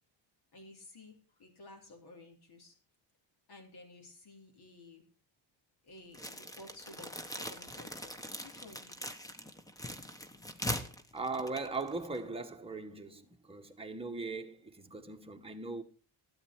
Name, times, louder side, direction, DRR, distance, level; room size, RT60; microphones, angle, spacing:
voice 1, 0.5-2.8 3.5-5.0 5.8-9.3, left 2 dB, 55° left, 3.7 m, -54 dB
sound 1, 6.1-12.2, left 1 dB, 10° left, 1.2 m, -41 dB
voice 2, 11.1-15.8, right 3 dB, 10° right, 1.3 m, -39 dB
12.5 x 9.1 x 4.5 m
cardioid pair, 115°, 45 cm